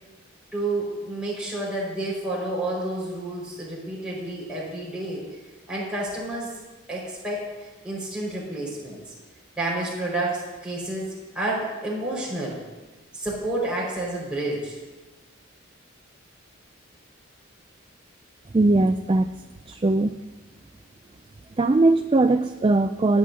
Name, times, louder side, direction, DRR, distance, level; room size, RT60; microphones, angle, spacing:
voice 1, 0.5-5.2 5.7-6.5 6.9-9.0 9.6-12.6 13.1-14.8, right 2 dB, 5° right, -6 dB, 5.3 m, -30 dB
voice 2, 18.5-19.3 19.7-20.1 21.6-23.2, right 2 dB, 25° right, 8 dB, 0.4 m, -20 dB
28.0 x 11.0 x 2.8 m, 1.2 s
head